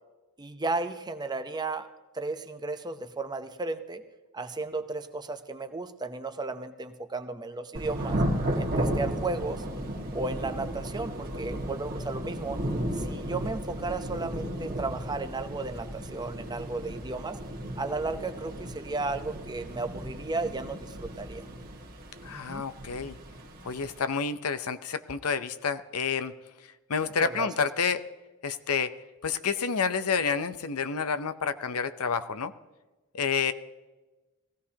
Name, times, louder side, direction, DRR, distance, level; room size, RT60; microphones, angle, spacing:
voice 1, 0.4-1.9 2.1-4.0 4.3-8.2 8.6-9.6 10.1-12.6 12.9-17.4 17.8-21.5 22.3-22.6 27.2-27.5, right 3 dB, 20° right, 8 dB, 0.7 m, -34 dB
Thunder / Rain, 7.7-24.0, right 1 dB, 45° right, 1.9 m, -34 dB
voice 2, 22.2-23.2 23.6-26.3 26.9-28.0 28.4-28.9 29.2-32.5 33.1-33.5, left 6 dB, 80° left, 12 dB, 0.7 m, -29 dB
19.5 x 16.0 x 2.9 m, 1.2 s
head